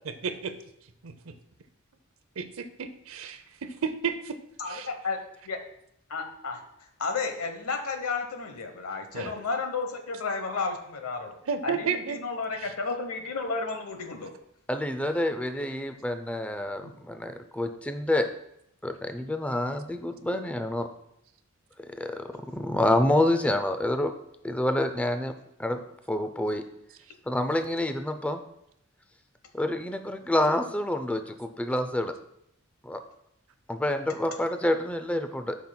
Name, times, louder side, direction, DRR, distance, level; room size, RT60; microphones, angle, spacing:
voice 1, 0.0-0.5 1.0-1.3 2.4-4.4 4.7-4.9 9.1-9.3 11.5-12.2 12.6-12.7, right 6 dB, 70° right, 10 dB, 0.6 m, -32 dB
voice 2, 4.6-5.2 5.4-5.6 6.1-6.6 7.0-11.3 11.6-14.3 16.8-16.9, left 4 dB, 80° left, 6 dB, 1.0 m, -32 dB
voice 3, 14.7-18.3 18.8-20.9 21.9-24.1 24.4-25.3 25.6-25.8 26.1-26.6 27.3-28.4 29.5-32.1 32.8-33.0 33.7-35.6, left 1 dB, 5° left, 8 dB, 0.4 m, -27 dB
12.0 x 5.5 x 2.3 m, 0.75 s
head